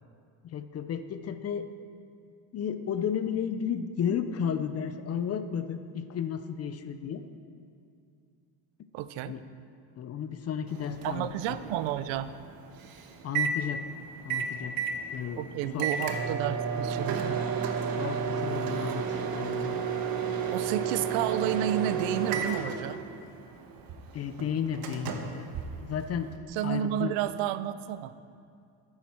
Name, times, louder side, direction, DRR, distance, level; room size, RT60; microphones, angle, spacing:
voice 1, 0.4-1.7 2.5-7.2 9.2-9.4 10.0-11.6 13.2-13.8 14.2-14.8 15.1-15.9 18.0-19.9 24.1-25.5 25.8-26.3 26.6-27.2, left 8 dB, 35° left, 10 dB, 0.5 m, -33 dB
voice 2, 8.9-9.3 11.0-12.3 15.4-17.5 20.5-23.0 26.5-28.2, right 11 dB, 85° right, 14 dB, 0.6 m, -31 dB
Microwave oven, 10.7-26.4, right 6 dB, 55° right, 1.1 m, -32 dB
13.5 x 9.6 x 4.4 m, 2.4 s
cardioid pair, 140°, 44 cm